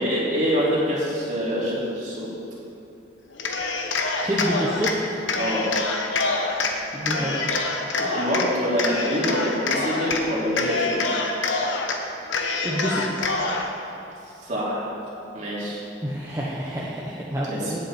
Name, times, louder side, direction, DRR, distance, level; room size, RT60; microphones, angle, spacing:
voice 1, 0.0-2.3 5.3-5.8 7.1-7.3 8.0-11.1 14.4-15.0 15.3-15.8 17.4-17.7, equal, 40° right, -7 dB, 3.3 m, -25 dB
Cheering, 3.3-4.9 5.3-6.7 7.0-8.5 8.8-10.2 10.5-12.0 12.3-13.7, left 3 dB, 85° left, 1.2 m, -26 dB
voice 2, 4.1-4.9 6.9-7.5 12.6-13.2 16.0-17.8, equal, 15° right, -7 dB, 1.1 m, -28 dB
17.5 x 8.2 x 4.4 m, 2.7 s
head